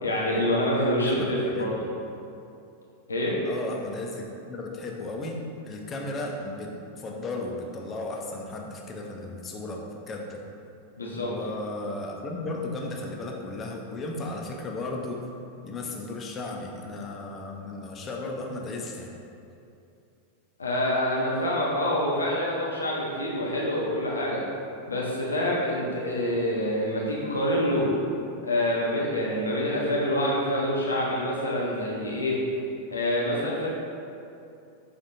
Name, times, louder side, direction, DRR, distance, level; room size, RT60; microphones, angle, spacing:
voice 1, 0.0-1.7 3.1-3.4 11.0-11.3 20.6-24.4 24.9-27.9 28.4-32.4 32.9-33.7, left 1 dB, 75° left, -4 dB, 0.6 m, -26 dB
voice 2, 1.1-1.7 3.4-10.4 11.1-15.3 15.6-19.1, left 2 dB, 25° left, 0 dB, 0.5 m, -35 dB
6.1 x 2.5 x 2.6 m, 2.6 s
figure-of-eight pair, 90°, 0 cm